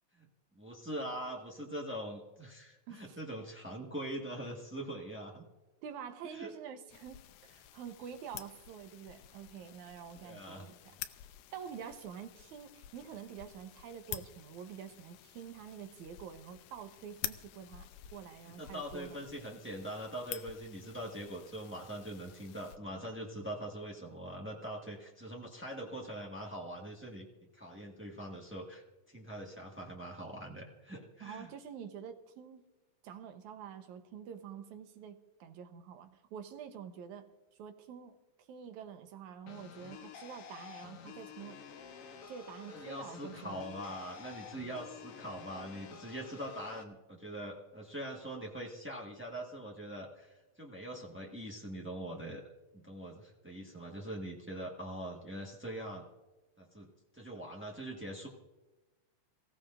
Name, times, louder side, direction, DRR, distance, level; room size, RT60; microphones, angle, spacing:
voice 1, 0.5-5.4 6.2-6.5 10.1-10.7 18.4-27.3 27.5-31.5 42.7-52.4 52.7-56.0 56.6-56.9 57.1-58.3, right 1 dB, 20° right, -2 dB, 0.3 m, -43 dB
voice 2, 2.9-3.2 5.8-11.0 11.5-17.9 18.1-19.2 31.2-32.6 33.0-37.3 37.6-38.2 38.5-41.6 42.3-44.1, right 8 dB, 85° right, 7 dB, 2.4 m, -47 dB
sound 1, 6.9-22.8, left 13 dB, 85° left, 2.0 m, -49 dB
sound 2, 39.5-46.8, left 7 dB, 60° left, 1.9 m, -50 dB
25.5 x 16.0 x 2.5 m, 1.1 s
omnidirectional pair, 3.3 m